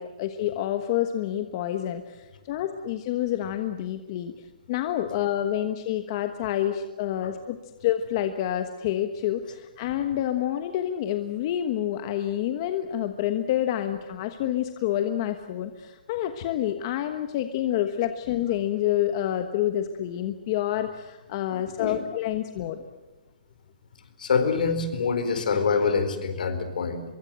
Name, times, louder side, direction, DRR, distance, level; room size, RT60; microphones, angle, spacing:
voice 1, 0.0-22.8, left 11 dB, 30° left, 8 dB, 1.3 m, -28 dB
voice 2, 24.2-27.0, left 5 dB, 65° left, 10 dB, 4.5 m, -25 dB
25.0 x 23.0 x 7.7 m, 1.1 s
hypercardioid pair, 170°, 5 cm